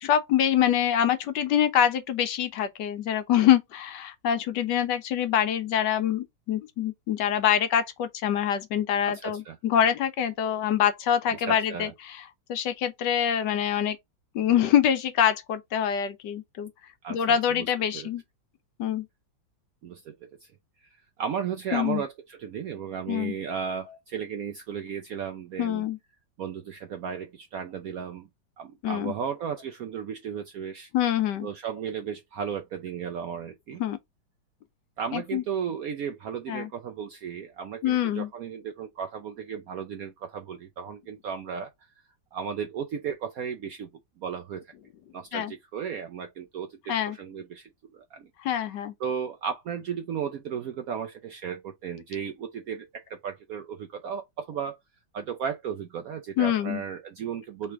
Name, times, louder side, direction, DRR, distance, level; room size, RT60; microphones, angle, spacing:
voice 1, 0.0-14.0 14.3-16.7 17.1-18.2 18.8-19.1 21.7-22.0 23.1-23.3 25.6-26.0 28.8-29.1 30.9-31.5 33.8-34.0 35.1-35.4 36.5-36.7 37.8-38.3 45.3-45.5 46.9-47.2 48.4-48.9 56.4-56.8, left 10 dB, 75° left, 1.2 m, -25 dB
voice 2, 9.1-9.6 11.5-11.9 17.0-17.7 17.9-18.1 19.8-20.1 20.4-20.5 20.8-25.8 26.4-28.3 28.6-30.9 31.4-33.8 35.0-41.7 42.3-43.9 44.2-44.6 45.1-48.3 49.0-54.8 55.1-57.7, right 7 dB, 75° right, 0.8 m, -35 dB
3.4 x 3.1 x 4.5 m
omnidirectional pair, 2.0 m